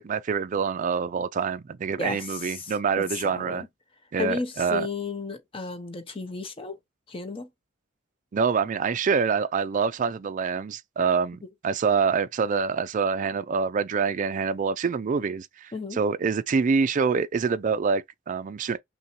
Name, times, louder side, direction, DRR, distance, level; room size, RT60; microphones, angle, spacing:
voice 1, 0.0-3.6 4.1-4.9 8.3-18.8, right 5 dB, 40° right, 0.3 m, -26 dB
voice 2, 2.0-3.7 4.2-6.8 7.1-7.5 15.7-16.0, left 4 dB, 25° left, 0.6 m, -34 dB
5.6 x 2.2 x 2.9 m
head